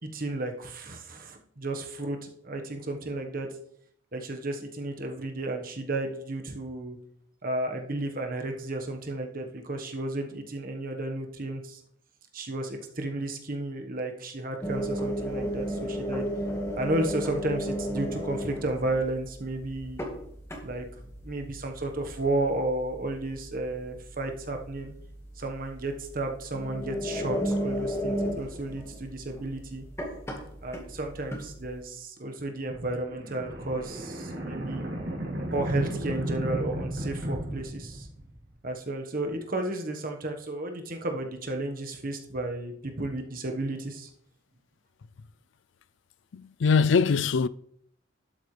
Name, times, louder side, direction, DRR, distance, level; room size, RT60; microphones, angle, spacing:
voice 1, 0.0-3.5 4.1-7.0 7.4-11.8 12.3-16.3 16.8-20.0 20.6-20.8 21.2-24.9 25.4-29.8 30.6-34.9 35.5-38.1 38.6-44.1, right 2 dB, 50° right, 1.3 m, -33 dB
sound 1, 14.6-31.8, equal, 15° left, 1.7 m, -35 dB
sound 2, 32.7-38.5, right 1 dB, 70° right, 3.5 m, -34 dB
voice 2, 46.3-47.5, left 5 dB, 70° left, 0.4 m, -22 dB
11.5 x 8.6 x 3.3 m
head